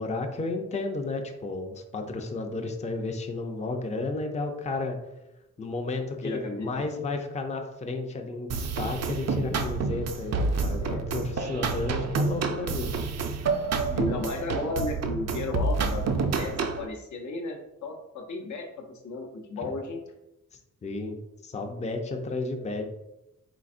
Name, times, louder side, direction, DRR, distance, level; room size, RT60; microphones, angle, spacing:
voice 1, 0.0-5.0 5.6-13.0 19.6-19.7 20.8-21.2 21.4-22.8, left 3 dB, 20° left, 4 dB, 0.4 m, -32 dB
voice 2, 6.2-6.8 10.8-11.0 13.5-13.6 13.9-20.0, left 2 dB, 65° left, 3 dB, 0.7 m, -34 dB
sound 1, 8.5-16.9, right 4 dB, 55° right, 0.4 m, -28 dB
4.1 x 3.9 x 2.5 m, 0.92 s
wide cardioid pair, 100°, 31 cm